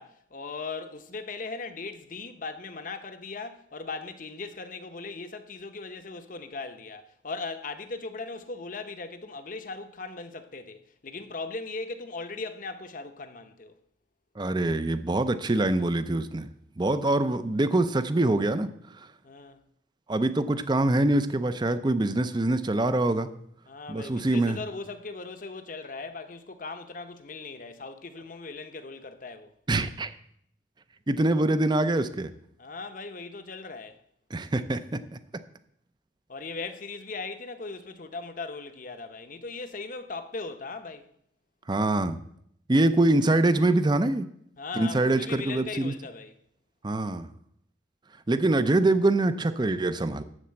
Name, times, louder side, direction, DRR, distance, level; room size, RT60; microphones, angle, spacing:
voice 1, 0.0-13.7 19.2-19.6 23.7-29.5 32.6-34.0 36.3-41.1 44.6-46.3, left 3 dB, 45° left, 0.8 m, -38 dB
voice 2, 14.4-16.5 16.8-19.1 20.1-23.3 23.9-24.6 29.7-30.1 31.1-32.3 34.3-35.2 41.7-42.2 42.7-44.3 44.8-45.9 46.8-47.3 48.3-50.2, right 2 dB, 25° right, 0.5 m, -24 dB
12.5 x 4.3 x 7.6 m
head